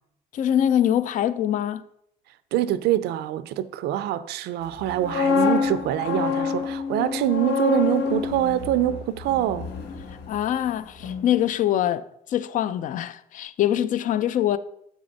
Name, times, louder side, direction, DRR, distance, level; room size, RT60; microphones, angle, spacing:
voice 1, 0.3-1.8 10.3-14.6, left 11 dB, 50° left, 0.4 m, -24 dB
voice 2, 2.5-9.7, right 12 dB, 75° right, 0.5 m, -25 dB
sound 1, 4.8-10.7 11.0-11.3, left 6 dB, 80° left, 0.9 m, -27 dB
7.2 x 6.4 x 3.9 m
cardioid pair, 110°, 17 cm